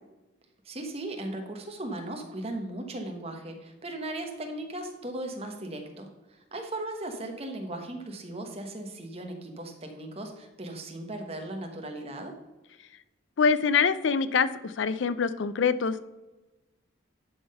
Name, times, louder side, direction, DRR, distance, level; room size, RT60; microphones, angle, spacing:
voice 1, 0.6-12.3, right 1 dB, 30° right, 4 dB, 1.1 m, -37 dB
voice 2, 13.4-16.1, left 5 dB, 60° left, 13 dB, 0.4 m, -25 dB
11.0 x 3.8 x 5.4 m, 1.1 s
head